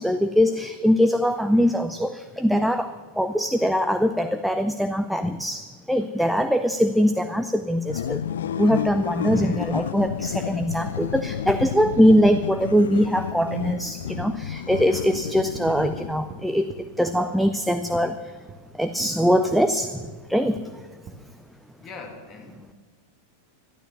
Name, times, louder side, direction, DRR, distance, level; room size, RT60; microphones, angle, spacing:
voice 1, 0.0-2.9 3.2-5.6 5.9-8.2 8.6-16.7 17.0-18.2 18.8-19.9 20.3-20.6, equal, ahead, 8 dB, 0.6 m, -22 dB
sound 1, 7.9-16.4, left 9 dB, 65° left, 0.5 m, -31 dB
voice 2, 14.7-15.1 21.8-22.7, left 4 dB, 30° left, 3 dB, 2.7 m, -42 dB
sound 2, 14.8-15.3 15.5-16.0 16.3-16.4 16.7-17.2 17.5-17.6 17.9-18.1 18.5-18.6 19.0-19.1 19.5-19.6 20.0-20.2 20.6-20.7 21.1-21.2, right 5 dB, 25° right, 1.2 m, -41 dB
12.5 x 12.0 x 6.8 m, 1.4 s
figure-of-eight pair, 90°, 0 cm